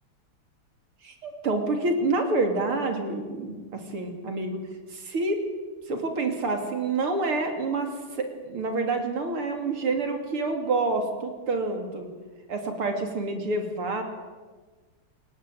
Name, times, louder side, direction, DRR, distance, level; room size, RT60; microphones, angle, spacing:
voice 1, 1.0-4.6 4.9-5.4 5.9-7.9 8.2-12.1 12.5-14.0, right 3 dB, 75° right, 5 dB, 3.7 m, -28 dB
28.5 x 16.5 x 9.3 m, 1.4 s
omnidirectional pair, 2.4 m